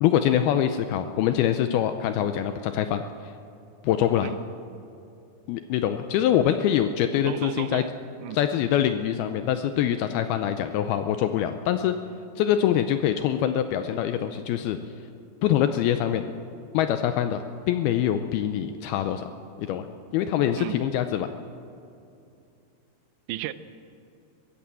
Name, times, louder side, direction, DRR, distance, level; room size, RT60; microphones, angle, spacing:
voice 1, 0.0-3.0 3.8-4.3 5.5-7.8 8.3-11.9 12.4-14.8 15.4-16.2 16.7-19.3 19.6-19.9 20.1-21.3, left 10 dB, 80° left, 8 dB, 2.3 m, -24 dB
voice 2, 7.3-7.9 8.2-8.4 20.6-20.8 23.3-23.5, right 14 dB, 90° right, 14 dB, 3.0 m, -34 dB
22.5 x 15.5 x 7.5 m, 2.6 s
omnidirectional pair, 5.0 m